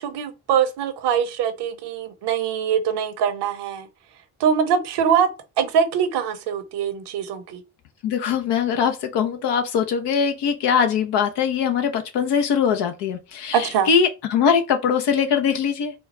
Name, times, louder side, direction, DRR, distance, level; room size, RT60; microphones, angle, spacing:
voice 1, 0.0-3.9 4.4-5.3 5.6-7.6 13.5-13.9, right 7 dB, 70° right, 0.9 m, -23 dB
voice 2, 8.0-15.9, left 7 dB, 75° left, 0.9 m, -21 dB
4.4 x 2.3 x 4.1 m
hypercardioid pair, 45°, 42 cm